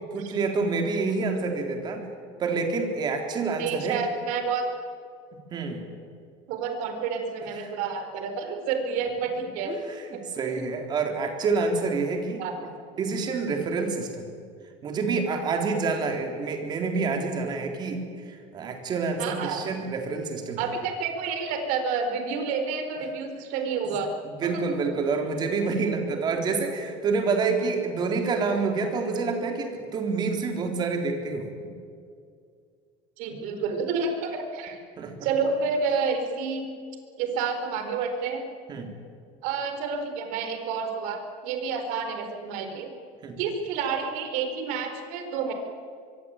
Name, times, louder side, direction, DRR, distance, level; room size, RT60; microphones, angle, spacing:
voice 1, 0.1-2.0 2.4-4.0 5.5-5.8 9.6-12.4 13.0-14.3 14.8-18.0 18.3-20.6 23.9-24.0 24.4-31.7 35.0-35.1 38.7-38.9 43.2-43.4, right 4 dB, 30° right, 4 dB, 3.8 m, -27 dB
voice 2, 3.6-4.7 6.5-9.7 10.1-10.7 12.4-12.6 19.2-19.6 20.6-24.1 24.4-24.8 33.2-34.8 35.2-36.7 37.2-38.4 39.4-42.9 43.4-45.5, right 5 dB, 60° right, 6 dB, 4.6 m, -29 dB
25.5 x 23.0 x 9.0 m, 2.2 s
cardioid pair, 170°, 15 cm